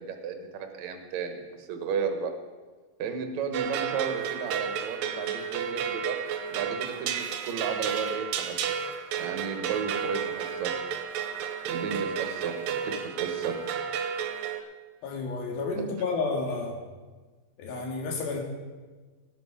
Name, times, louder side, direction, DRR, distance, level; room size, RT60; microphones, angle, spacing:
voice 1, 0.0-2.3 3.0-6.2 6.5-7.2 7.4-8.8 9.2-10.7 11.7-12.6 12.8-13.6, right 6 dB, 60° right, 5 dB, 2.2 m, -33 dB
sound 1, 3.5-14.6, right 7 dB, 75° right, 2.4 m, -32 dB
voice 2, 15.0-16.8 17.6-18.4, left 3 dB, 80° left, 0 dB, 3.8 m, -31 dB
17.5 x 8.2 x 4.9 m, 1.4 s
omnidirectional pair, 4.2 m